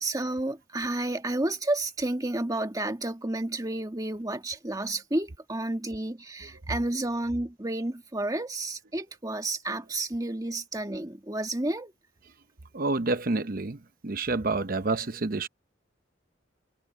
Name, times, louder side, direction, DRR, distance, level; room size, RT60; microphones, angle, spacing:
voice 1, 0.0-11.9, right 2 dB, 20° right, 1.6 m, -31 dB
voice 2, 12.7-13.8 14.0-15.5, right 3 dB, 45° right, 0.8 m, -28 dB
head